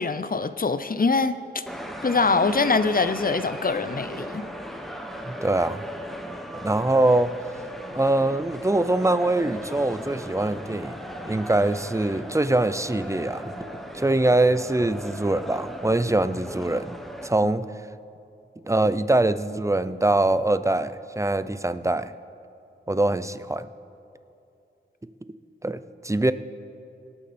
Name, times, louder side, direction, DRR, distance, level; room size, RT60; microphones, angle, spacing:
voice 1, 0.0-1.6 2.0-4.4, left 4 dB, 45° left, 12 dB, 0.6 m, -23 dB
sound 1, 1.7-17.3, equal, ahead, 1.2 m, -37 dB
voice 2, 5.3-5.8 6.5-7.3 7.9-11.0 11.2-13.5 13.9-16.9 17.2-17.7 18.6-22.1 22.9-23.7 25.6-26.3, right 2 dB, 15° right, 13 dB, 0.5 m, -23 dB
25.5 x 8.7 x 4.3 m, 2.7 s
wide cardioid pair, 75°, 21 cm